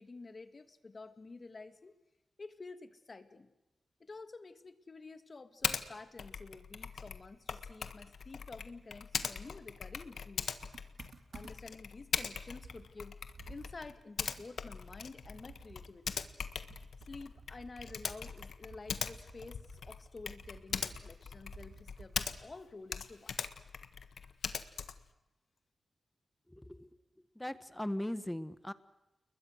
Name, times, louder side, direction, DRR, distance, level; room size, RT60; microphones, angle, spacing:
voice 1, 0.0-2.0 2.4-3.5 4.0-10.6 11.3-13.2 13.5-16.2 17.0-23.4, left 3 dB, 40° left, 10 dB, 2.0 m, -50 dB
Typing, 5.6-5.8 6.2-22.6 22.9-25.1, left 6 dB, 80° left, 1.5 m, -41 dB
Computer keyboard, 10.6-11.8 12.2-12.3 12.6-22.7, right 4 dB, 70° right, 4.4 m, -55 dB
voice 2, 26.5-26.9 27.3-28.7, left 1 dB, 10° left, 13 dB, 1.3 m, -39 dB
29.5 x 21.5 x 6.4 m, 0.99 s
wide cardioid pair, 90°, 0 cm